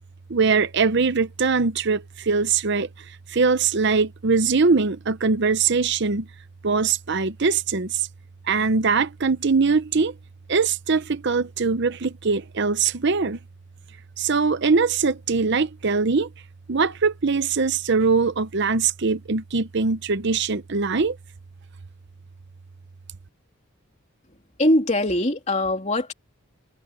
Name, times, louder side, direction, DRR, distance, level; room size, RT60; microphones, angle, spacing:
voice 1, 0.3-2.9 3.3-6.3 6.6-8.1 8.5-10.1 10.5-13.4 14.2-16.3 16.7-21.2, right 4 dB, 55° right, 0.7 m, -22 dB
voice 2, 24.6-26.1, left 1 dB, 30° left, 3.2 m, -21 dB
head